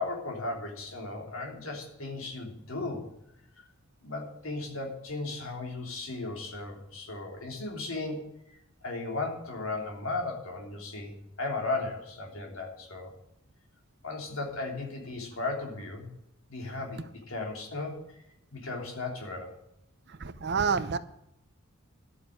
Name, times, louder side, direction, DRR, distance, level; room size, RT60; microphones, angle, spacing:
voice 1, 0.0-3.1 4.0-8.3 8.8-13.1 14.0-16.1 16.5-18.2 18.5-19.5, left 3 dB, 75° left, 2 dB, 3.3 m, -36 dB
voice 2, 20.1-21.0, right 5 dB, 55° right, 13 dB, 0.8 m, -28 dB
12.0 x 6.9 x 8.7 m, 0.80 s
head